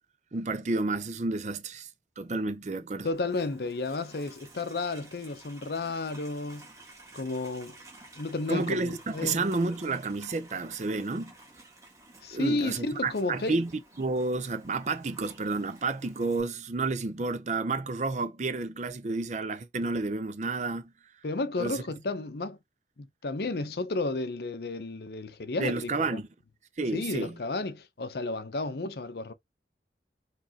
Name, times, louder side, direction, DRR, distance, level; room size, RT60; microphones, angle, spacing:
voice 1, 0.3-1.9 2.2-3.1 8.5-11.3 12.3-13.7 14.0-20.8 21.6-21.8 25.6-26.3 26.8-27.3, right 3 dB, 40° right, 0.5 m, -30 dB
voice 2, 3.0-6.7 7.1-7.8 8.2-9.4 12.2-13.6 21.2-22.6 23.0-26.2 26.9-29.3, left 3 dB, 60° left, 0.6 m, -32 dB
Livestock farm animals working animals, 3.1-16.4, right 2 dB, 15° right, 1.6 m, -52 dB
4.9 x 3.2 x 2.8 m
head